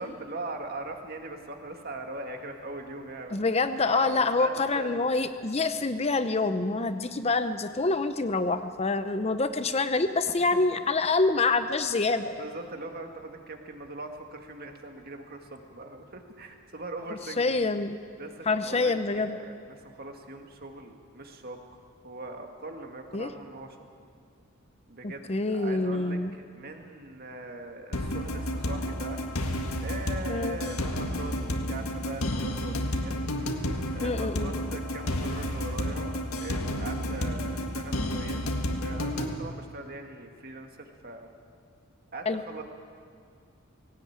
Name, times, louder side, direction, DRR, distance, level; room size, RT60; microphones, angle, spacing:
voice 1, 0.0-3.5 3.8-5.1 10.4-10.9 11.2-11.3 12.4-17.6 18.2-21.6 22.0-23.9 24.9-29.2 29.8-33.2 33.9-38.4 38.8-41.3 42.1-42.6, right 2 dB, 45° right, 4 dB, 2.0 m, -41 dB
voice 2, 3.3-12.4 17.1-18.0 18.5-19.4 23.1-23.3 25.0-26.3 30.3-30.6 34.0-34.5 42.3-42.4, left 3 dB, 30° left, 10 dB, 0.6 m, -26 dB
sound 1, 27.9-39.3, left 1 dB, 80° left, 1.7 m, -31 dB
19.0 x 17.0 x 8.8 m, 2.2 s
head